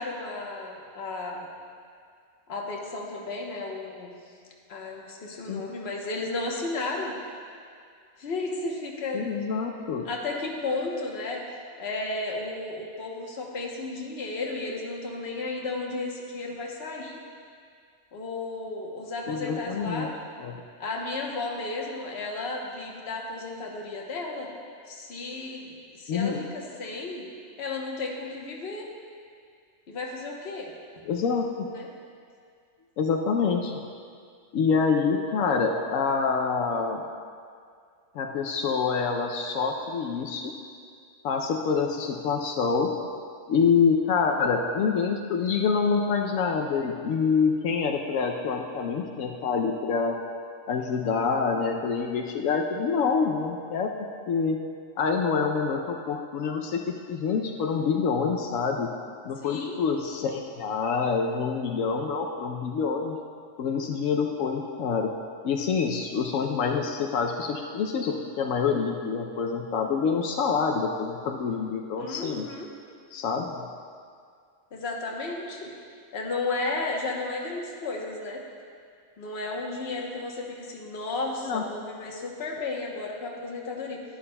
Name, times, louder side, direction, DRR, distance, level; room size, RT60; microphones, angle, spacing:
voice 1, 0.0-1.5 2.5-4.1 4.7-7.1 8.2-9.4 10.0-17.2 18.1-20.1 20.8-24.5 24.9-27.3 27.6-28.9 29.9-30.7 31.7-31.9 59.4-59.8 72.0-72.7 74.7-75.7 76.1-78.4 79.2-84.0, left 3 dB, 55° left, -1 dB, 1.2 m, -33 dB
voice 2, 9.1-10.1 19.3-20.1 20.4-20.6 26.1-26.4 31.1-31.7 33.0-33.7 34.5-37.0 38.1-40.5 41.2-42.9 43.5-50.2 50.7-53.9 54.3-54.6 55.0-58.9 59.2-63.2 63.6-65.1 65.4-72.5 73.1-73.6 81.4-81.6, left 5 dB, 85° left, 2 dB, 1.0 m, -26 dB
11.0 x 10.5 x 2.2 m, 2.2 s
omnidirectional pair, 1.3 m